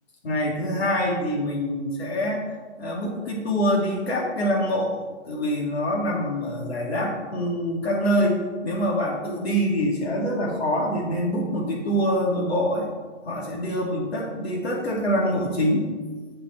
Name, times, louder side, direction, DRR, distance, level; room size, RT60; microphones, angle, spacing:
voice 1, 0.2-4.9 5.3-12.9 13.2-15.9, equal, 60° left, -2 dB, 2.8 m, -25 dB
9.3 x 5.6 x 4.5 m, 1.4 s
figure-of-eight pair, 135°, 36 cm